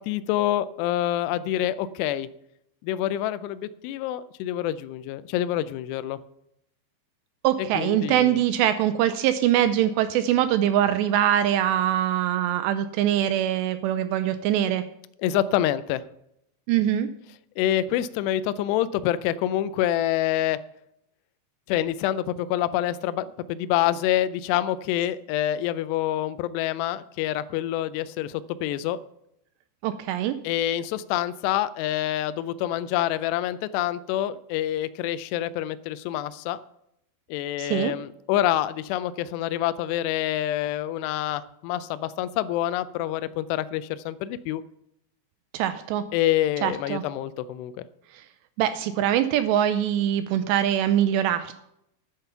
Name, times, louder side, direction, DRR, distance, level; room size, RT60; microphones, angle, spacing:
voice 1, 0.0-2.3 2.8-6.2 7.8-8.4 15.2-16.0 17.6-20.6 21.7-29.0 30.4-36.6 37.3-44.6 46.1-47.9, left 12 dB, 85° left, 14 dB, 2.4 m, -27 dB
voice 2, 7.4-14.8 16.7-17.1 29.8-30.3 37.6-37.9 45.5-46.0 46.6-47.0 48.1-48.2 48.6-51.5, right 11 dB, 85° right, 11 dB, 2.5 m, -23 dB
10.5 x 9.1 x 5.7 m, 0.77 s
omnidirectional pair, 5.4 m